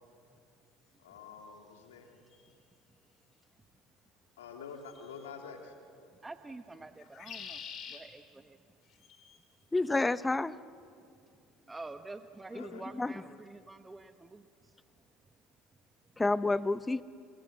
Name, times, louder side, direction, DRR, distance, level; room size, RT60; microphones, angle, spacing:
voice 1, 1.0-2.1 4.4-5.7 12.5-12.8, left 6 dB, 85° left, 3 dB, 3.0 m, -47 dB
sound 1, 2.3-2.4 4.9-5.2 7.0-8.0 8.9-9.4, left 7 dB, 50° left, 4.2 m, -46 dB
voice 2, 6.2-7.6 7.9-8.6 11.7-14.7, right 3 dB, 15° right, 9 dB, 1.0 m, -47 dB
voice 3, 9.7-10.5 12.5-13.2 16.2-17.0, left 2 dB, 15° left, 15 dB, 0.9 m, -30 dB
29.0 x 24.5 x 7.6 m, 2.4 s
hypercardioid pair, 75°, 0 cm